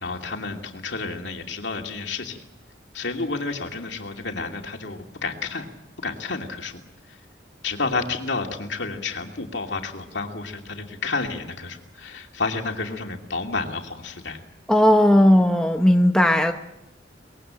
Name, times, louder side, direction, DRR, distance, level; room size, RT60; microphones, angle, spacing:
voice 1, 0.0-2.4 2.9-5.7 6.0-6.8 7.6-14.4, left 3 dB, 70° left, 3 dB, 2.7 m, -30 dB
voice 2, 14.7-16.5, left 1 dB, 5° left, 4 dB, 1.0 m, -16 dB
23.5 x 21.0 x 7.7 m, 0.91 s
head